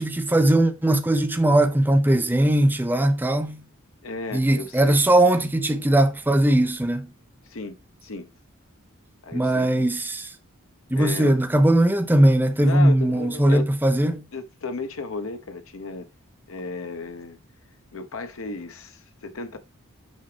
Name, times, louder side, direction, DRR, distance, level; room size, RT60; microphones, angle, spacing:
voice 1, 0.0-3.6 4.3-7.1 9.3-10.3 10.9-14.2, right 1 dB, 10° right, 0.6 m, -19 dB
voice 2, 4.0-5.0 7.5-7.8 8.0-8.3 9.2-9.9 11.0-11.4 12.6-13.7 14.3-16.1 16.5-17.4 17.9-19.6, left 3 dB, 75° left, 0.9 m, -34 dB
6.4 x 4.9 x 3.3 m
head